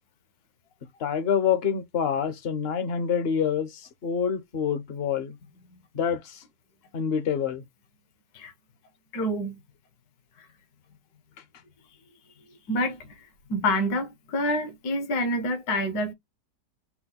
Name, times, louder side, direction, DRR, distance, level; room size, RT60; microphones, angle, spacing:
voice 1, 1.0-5.3 5.9-6.4 6.9-7.6, left 7 dB, 50° left, 0.8 m, -27 dB
voice 2, 9.1-9.5 12.7-13.2 13.5-16.1, left 1 dB, 70° left, 1.5 m, -27 dB
5.8 x 2.2 x 4.0 m
omnidirectional pair, 1.8 m